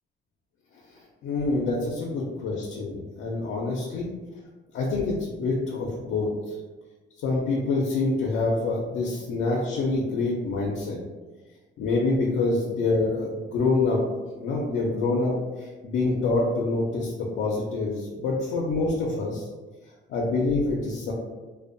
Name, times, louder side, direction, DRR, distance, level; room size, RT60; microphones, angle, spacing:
voice 1, 1.2-4.1 4.7-6.3 7.2-11.0 11.8-14.0 14.4-19.5 20.1-21.1, left 3 dB, 80° left, -3 dB, 0.5 m, -26 dB
2.5 x 2.1 x 2.5 m, 1.2 s
cardioid pair, 90°, 20 cm